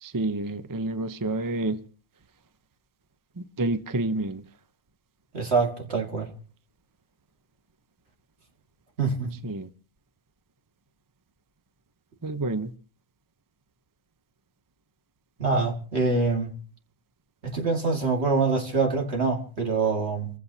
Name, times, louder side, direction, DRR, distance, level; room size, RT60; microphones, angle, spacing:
voice 1, 0.0-1.8 3.4-4.4 9.4-9.7 12.2-12.7, right 2 dB, 25° right, 0.4 m, -29 dB
voice 2, 5.3-6.3 9.0-9.3 15.4-16.5 17.4-20.3, right 4 dB, 45° right, 2.4 m, -25 dB
29.5 x 15.0 x 2.8 m
omnidirectional pair, 1.5 m